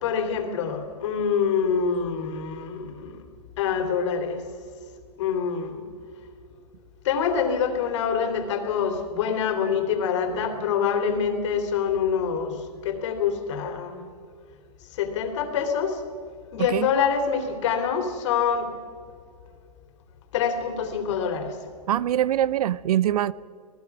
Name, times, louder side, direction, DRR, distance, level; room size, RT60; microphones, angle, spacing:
voice 1, 0.0-3.2 3.6-4.4 5.2-5.8 7.0-12.5 12.8-14.0 15.0-16.0 16.5-18.7 20.3-21.5, left 7 dB, 45° left, 6 dB, 3.1 m, -25 dB
voice 2, 16.6-16.9 21.9-23.3, right 12 dB, 65° right, 21 dB, 0.6 m, -24 dB
26.5 x 18.5 x 6.0 m, 2.2 s
hypercardioid pair, 170°, 20 cm